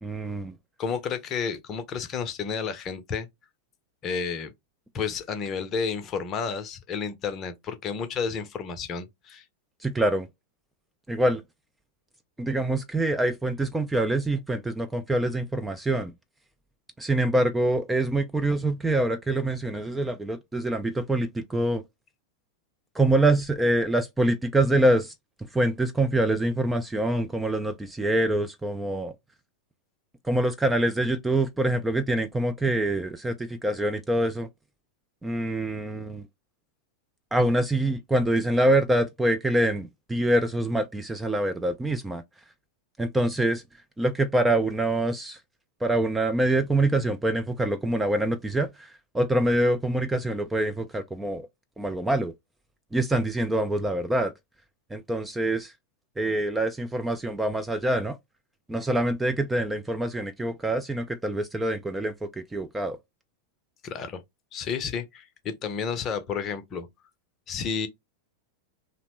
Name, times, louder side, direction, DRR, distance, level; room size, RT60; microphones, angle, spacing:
voice 1, 0.0-0.6 9.8-10.3 11.1-11.4 12.4-16.1 17.0-21.8 22.9-25.1 25.5-29.1 30.2-34.5 35.2-36.3 37.3-42.2 43.0-43.6 44.0-45.4 45.8-51.5 51.8-52.3 52.9-54.3 54.9-55.7 56.2-58.2 58.7-63.0, right 1 dB, 10° right, 0.3 m, -25 dB
voice 2, 0.8-3.3 4.0-4.5 4.9-9.4 63.8-64.2 64.5-66.9 67.5-67.9, left 6 dB, 30° left, 0.6 m, -31 dB
2.8 x 2.0 x 2.9 m
figure-of-eight pair, 90°, 0 cm